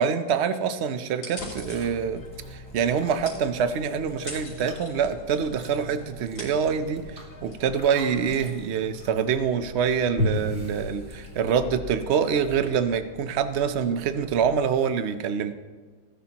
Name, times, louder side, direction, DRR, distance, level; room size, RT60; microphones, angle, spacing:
voice 1, 0.0-2.2 2.5-7.0 7.4-15.5, right 7 dB, 80° right, 10 dB, 0.6 m, -25 dB
sound 1, 1.2-8.9, left 1 dB, 80° left, 4.4 m, -45 dB
sound 2, 1.4-14.7, left 2 dB, 40° left, 1.0 m, -44 dB
Chewing mastication, 1.5-11.7, left 1 dB, 40° right, 2.5 m, -37 dB
19.0 x 11.5 x 2.9 m, 1.4 s
omnidirectional pair, 2.0 m